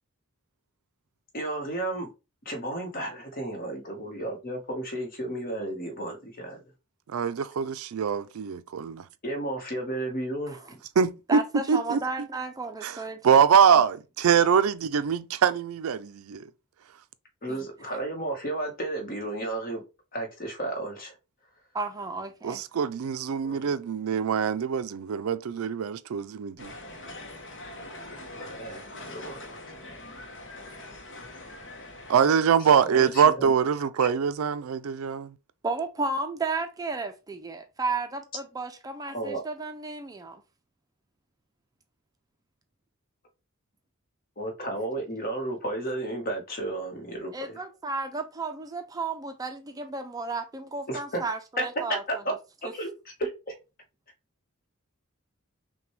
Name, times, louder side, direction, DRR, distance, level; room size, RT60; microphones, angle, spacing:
voice 1, 1.3-2.1 2.4-6.6 9.2-10.7 17.4-19.8 20.1-21.1 23.4-23.7 28.1-28.8 29.1-29.6 32.6-33.7 34.0-34.1 39.1-39.4 44.4-47.6 50.9-51.2 51.6-51.7 52.2-52.3 52.7-53.5, right 1 dB, 45° left, 1.2 m, -33 dB
voice 2, 7.1-9.0 11.0-11.4 11.7-12.0 12.8-13.0 13.2-16.5 22.4-26.7 32.1-35.3, right 7 dB, 80° right, 0.4 m, -23 dB
voice 3, 11.3-13.4 17.5-17.6 21.7-22.6 35.6-40.4 47.3-52.0, right 3 dB, 15° right, 0.4 m, -33 dB
sound 1, 26.6-32.3, left 2 dB, 60° left, 0.9 m, -43 dB
5.8 x 2.3 x 3.1 m
head